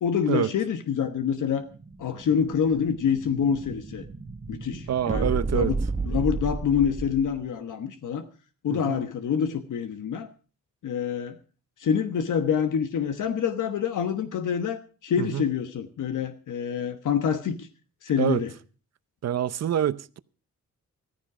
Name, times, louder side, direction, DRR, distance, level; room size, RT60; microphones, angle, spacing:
voice 1, 0.0-1.7 2.0-4.0 4.5-5.8 6.1-8.2 8.6-10.3 10.8-11.4 11.8-17.7 18.0-18.5, left 7 dB, 75° left, 1.2 m, -26 dB
Explosion, 1.4-7.4, right 3 dB, 20° right, 1.2 m, -32 dB
voice 2, 4.9-5.7 8.7-9.0 15.2-15.5 18.2-18.4 19.2-20.2, right 10 dB, 55° right, 0.7 m, -26 dB
14.5 x 14.5 x 4.9 m
cardioid pair, 110°, 31 cm